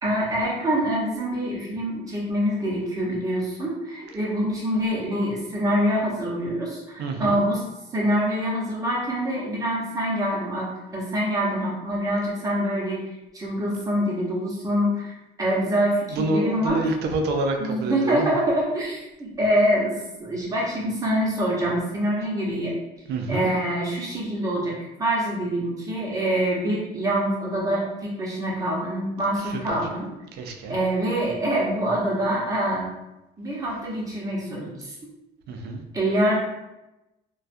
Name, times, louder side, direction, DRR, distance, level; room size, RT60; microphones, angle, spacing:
voice 1, 0.0-7.6 7.9-15.1 15.4-16.9 17.6-19.9 20.2-22.7 23.3-24.7 25.0-30.1 30.7-32.9 33.4-34.9 35.9-36.4, equal, 20° right, -5 dB, 0.8 m, -25 dB
voice 2, 7.0-7.4 16.1-18.3 23.1-23.5 29.7-29.8 30.4-30.8 35.5-35.8, right 2 dB, 75° right, 4 dB, 0.5 m, -27 dB
2.3 x 2.2 x 2.5 m, 0.96 s
cardioid pair, 110°, 17 cm